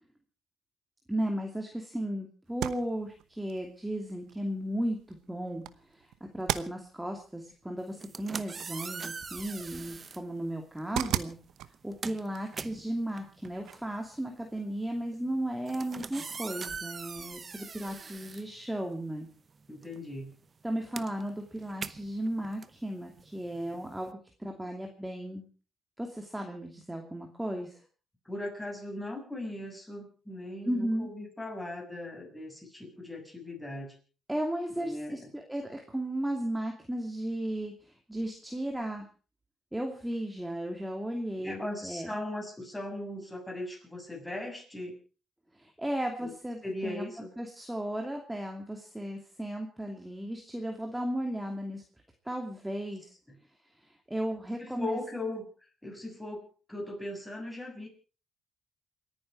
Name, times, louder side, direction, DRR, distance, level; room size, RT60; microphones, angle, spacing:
voice 1, 1.1-5.6 5.9-11.4 11.8-19.3 20.6-24.1 24.4-25.5 26.0-27.8 30.6-31.1 34.3-39.0 39.7-42.1 45.5-47.0 47.4-51.8 52.2-53.1 53.8-55.0, right 1 dB, 5° right, 2 dB, 2.7 m, -35 dB
sound 1, 2.4-14.1, right 13 dB, 90° right, 0.9 m, -41 dB
sound 2, 7.9-10.3 11.1-11.3 11.7-19.2 19.5-24.1, right 5 dB, 40° right, 0.8 m, -42 dB
voice 2, 19.7-20.4 28.3-34.0 34.7-35.3 41.4-45.0 46.2-46.3 46.6-47.3 54.6-55.5 55.8-57.9, left 1 dB, 10° left, 1 dB, 7.3 m, -38 dB
28.5 x 9.8 x 4.7 m, 0.37 s
cardioid pair, 90°, 0 cm